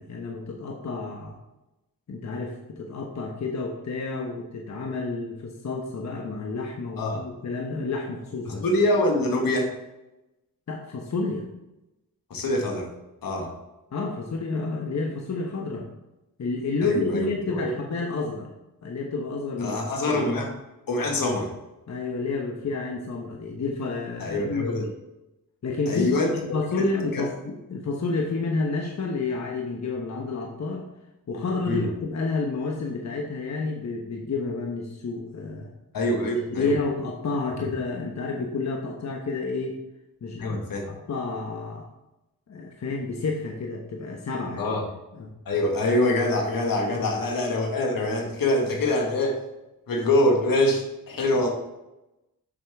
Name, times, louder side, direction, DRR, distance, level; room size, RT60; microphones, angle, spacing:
voice 1, 0.0-1.4 2.1-8.8 10.7-11.5 13.9-15.9 16.4-18.5 18.8-19.8 20.1-20.2 21.9-24.9 25.6-26.2 26.5-30.9 31.3-35.7 36.5-39.8 40.2-41.9 42.5-44.8 45.1-45.3 46.9-47.0, left 3 dB, 50° left, 0 dB, 1.1 m, -30 dB
voice 2, 8.5-9.7 12.3-12.9 13.2-13.5 16.8-17.7 19.6-20.5 20.9-21.5 24.2-24.9 25.9-26.4 26.8-26.9 27.1-27.3 31.7-31.9 35.9-36.7 40.4-40.9 44.6-44.8 45.5-49.4 49.9-51.5, left 1 dB, 70° left, 2 dB, 1.8 m, -24 dB
7.4 x 6.3 x 3.5 m, 0.96 s
cardioid pair, 65°, 35 cm